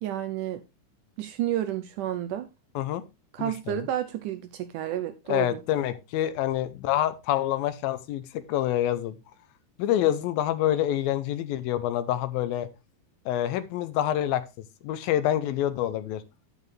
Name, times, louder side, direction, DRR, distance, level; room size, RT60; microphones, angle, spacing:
voice 1, 0.0-0.6 1.2-2.5 3.3-5.6, right 12 dB, 80° right, 1.9 m, -31 dB
voice 2, 3.4-3.9 5.3-9.2 9.8-12.7 13.3-14.4 14.8-16.2, left 12 dB, 80° left, 2.6 m, -27 dB
8.9 x 8.6 x 3.2 m
omnidirectional pair, 4.2 m